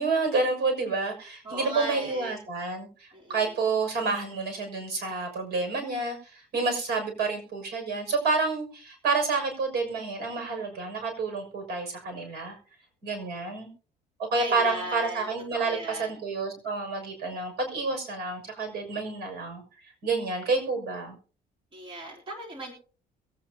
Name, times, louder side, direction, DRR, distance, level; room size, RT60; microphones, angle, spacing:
voice 1, 0.0-12.6 13.0-13.7 14.2-21.2, right 3 dB, 70° right, 4 dB, 6.3 m, -29 dB
voice 2, 1.4-2.3 3.1-3.4 14.4-15.2 15.5-16.1 21.7-22.7, right 1 dB, 30° right, -2 dB, 3.6 m, -37 dB
22.5 x 8.9 x 2.9 m, 0.38 s
cardioid pair, 110°, 17 cm